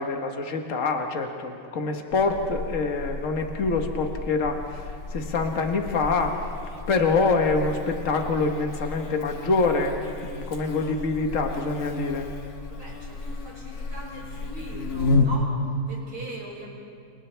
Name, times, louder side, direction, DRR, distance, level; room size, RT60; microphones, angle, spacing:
voice 1, 0.0-6.4 6.9-10.0 10.2-12.3, left 3 dB, 60° left, 4 dB, 1.7 m, -25 dB
Buzz, 2.1-15.3, left 3 dB, 80° left, 1.9 m, -32 dB
voice 2, 12.7-16.7, right 1 dB, 40° right, -5 dB, 5.9 m, -40 dB
29.5 x 28.5 x 3.4 m, 2.4 s
omnidirectional pair, 1.5 m